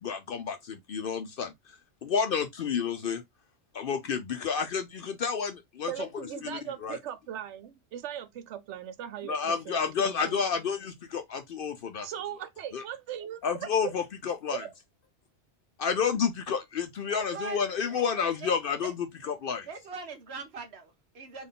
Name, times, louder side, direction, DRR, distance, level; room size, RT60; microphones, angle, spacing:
voice 1, 0.0-3.2 3.7-6.1 6.4-7.0 9.2-12.1 12.7-12.8 13.4-14.6 15.8-19.7, left 6 dB, 60° left, 0.7 m, -30 dB
voice 2, 5.9-10.5 12.0-13.9 14.5-14.7, right 10 dB, 90° right, 0.9 m, -39 dB
voice 3, 17.1-17.6 17.9-18.5 18.8-18.9 19.7-21.5, right 4 dB, 65° right, 1.2 m, -41 dB
3.7 x 2.6 x 3.7 m
omnidirectional pair, 1.2 m